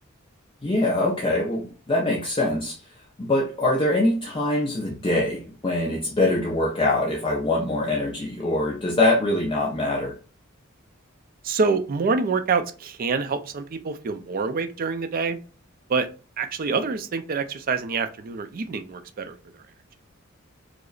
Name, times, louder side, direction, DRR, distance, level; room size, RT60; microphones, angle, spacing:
voice 1, 0.6-2.8 3.2-10.2, left 2 dB, 25° left, 0.5 m, -23 dB
voice 2, 11.4-15.4 15.9-16.1 16.4-19.3, right 4 dB, 45° right, 0.4 m, -26 dB
4.8 x 2.0 x 2.4 m
head